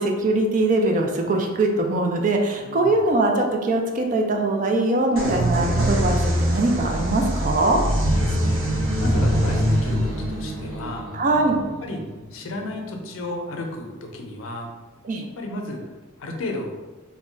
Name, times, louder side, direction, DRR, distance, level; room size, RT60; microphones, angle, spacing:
voice 1, 0.0-7.8 11.1-11.6 15.0-15.3, right 2 dB, 40° right, 2 dB, 0.3 m, -22 dB
voice 2, 2.6-3.0 8.1-8.6 9.0-11.1 11.8-12.0 12.3-14.7 15.3-15.9 16.2-16.7, left 2 dB, 90° left, 2 dB, 0.5 m, -33 dB
sound 1, 5.2-12.7, equal, 90° right, 0.6 m, -23 dB
2.2 x 2.1 x 3.8 m, 1.2 s
head